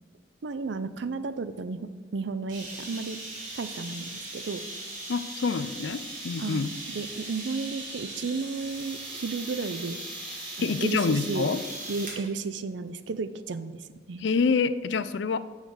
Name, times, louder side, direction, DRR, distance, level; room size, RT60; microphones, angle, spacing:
voice 1, 0.4-3.2 3.6-4.6 6.4-10.0 10.6-11.5 11.9-14.3, right 4 dB, 70° right, 13 dB, 0.5 m, -33 dB
sound 1, 2.5-12.2, right 2 dB, 45° right, 2.4 m, -39 dB
voice 2, 5.1-6.7 10.6-11.6 14.2-15.4, left 5 dB, 70° left, 14 dB, 0.4 m, -26 dB
6.5 x 6.4 x 6.5 m, 1.5 s
head